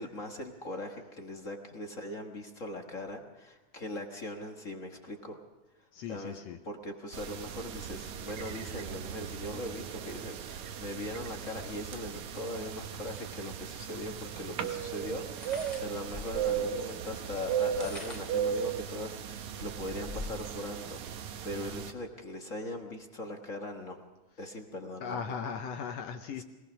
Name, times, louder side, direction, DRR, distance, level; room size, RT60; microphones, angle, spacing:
voice 1, 0.0-5.4 6.1-24.0 24.4-25.2 26.4-26.5, left 1 dB, 45° left, 3 dB, 1.0 m, -40 dB
voice 2, 5.9-6.6 25.0-26.4, left 6 dB, 70° left, 6 dB, 1.8 m, -38 dB
sound 1, 7.1-21.9, right 8 dB, 70° right, 2.4 m, -37 dB
sound 2, 13.9-14.0 15.3-16.6 17.6-18.4 19.1-19.2 19.5-20.6, left 3 dB, 15° left, 2.2 m, -44 dB
23.0 x 18.5 x 6.1 m, 1.1 s
omnidirectional pair, 3.5 m